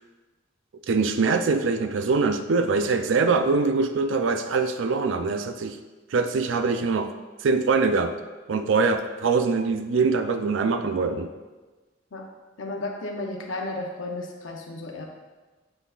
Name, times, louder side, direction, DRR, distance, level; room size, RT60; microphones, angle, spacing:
voice 1, 0.9-5.8 6.1-7.1 7.4-8.2 8.5-11.3, right 4 dB, 75° right, 8 dB, 0.4 m, -23 dB
voice 2, 12.6-15.1, left 2 dB, 80° left, 0 dB, 0.8 m, -33 dB
8.0 x 5.5 x 2.5 m, 1.2 s
head